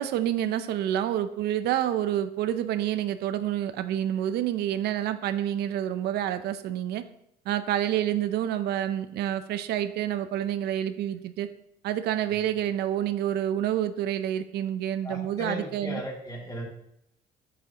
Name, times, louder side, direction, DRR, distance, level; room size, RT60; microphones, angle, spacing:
voice 1, 0.0-7.0 7.5-11.5 11.8-16.0, right 11 dB, 75° right, 11 dB, 0.5 m, -28 dB
voice 2, 15.0-16.6, left 1 dB, 20° left, -1 dB, 2.3 m, -37 dB
8.2 x 7.2 x 2.9 m, 0.76 s
cardioid pair, 110°, 17 cm